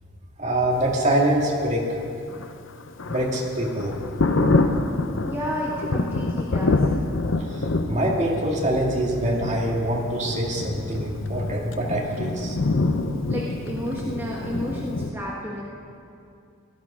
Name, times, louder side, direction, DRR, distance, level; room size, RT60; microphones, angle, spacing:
voice 1, 0.4-2.0 3.1-3.9 7.4-12.6, right 1 dB, 35° right, -2 dB, 2.1 m, -24 dB
Thunder, 2.3-15.1, left 2 dB, 65° left, 0.7 m, -26 dB
voice 2, 5.3-7.1 13.3-15.7, equal, 10° right, -5 dB, 1.3 m, -31 dB
17.5 x 12.0 x 5.0 m, 2.5 s
head